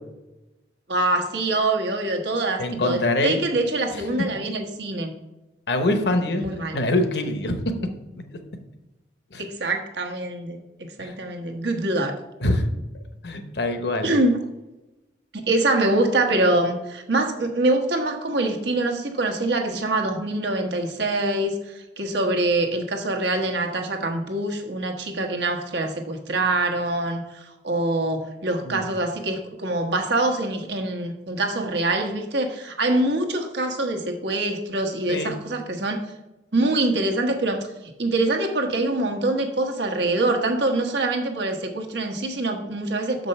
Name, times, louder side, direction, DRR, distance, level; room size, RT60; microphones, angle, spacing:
voice 1, 0.9-5.1 6.4-6.8 9.4-10.6 11.0-12.1 14.0-14.4 15.3-36.0 36.5-37.7 38.0-43.3, right 2 dB, 75° right, 3 dB, 1.1 m, -24 dB
voice 2, 2.6-3.4 5.7-6.4 6.7-7.6 9.3-9.4 11.0-11.1 12.4-12.6 13.2-14.1 28.6-28.8 35.1-35.4, left 2 dB, 70° left, 7 dB, 0.9 m, -24 dB
6.7 x 5.2 x 5.4 m, 0.99 s
head